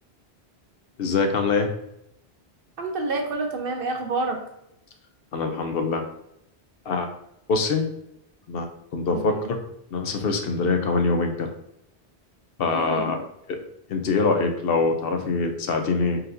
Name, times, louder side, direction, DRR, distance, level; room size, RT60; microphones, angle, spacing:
voice 1, 1.0-1.7 5.3-6.0 6.9-7.1 7.5-7.9 8.5-8.7 8.9-9.4 9.9-11.5 12.6-13.2 13.5-13.6 13.9-16.2, left 4 dB, 65° left, 5 dB, 0.8 m, -24 dB
voice 2, 2.8-4.4 9.1-9.5 12.6-13.2, right 3 dB, 60° right, 3 dB, 0.9 m, -28 dB
4.1 x 4.0 x 2.5 m, 0.79 s
omnidirectional pair, 1.1 m